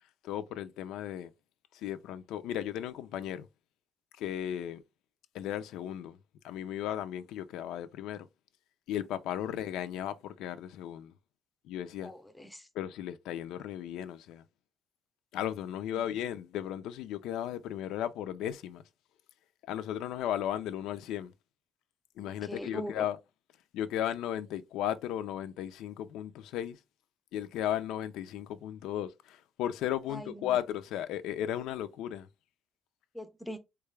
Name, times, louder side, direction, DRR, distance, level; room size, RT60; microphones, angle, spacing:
voice 1, 0.2-1.3 1.7-3.5 4.2-4.8 5.3-6.2 6.4-8.3 8.9-11.1 11.7-12.1 12.8-14.4 15.3-18.8 19.7-21.3 22.2-23.2 23.7-26.8 27.3-32.3, left 11 dB, 90° left, 0.3 m, -35 dB
voice 2, 12.0-12.7 15.9-16.0 22.3-23.1 30.1-30.6 33.1-33.6, equal, 5° left, 0.4 m, -41 dB
3.6 x 2.3 x 3.1 m
cardioid pair, 155°, 0 cm